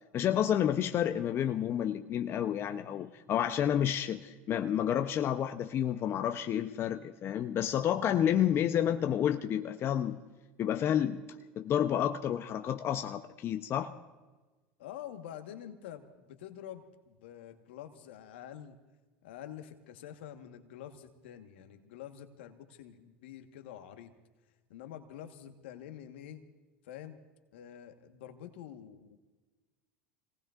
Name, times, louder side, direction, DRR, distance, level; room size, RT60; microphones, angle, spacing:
voice 1, 0.1-10.2 10.6-11.2 11.6-13.9, left 10 dB, 45° left, 0.7 m, -30 dB
voice 2, 14.8-18.8 19.2-24.1 24.7-26.4 26.8-27.2 27.5-29.2, left 10 dB, 80° left, 1.4 m, -47 dB
27.0 x 18.5 x 2.5 m
hypercardioid pair, 90°, 6 cm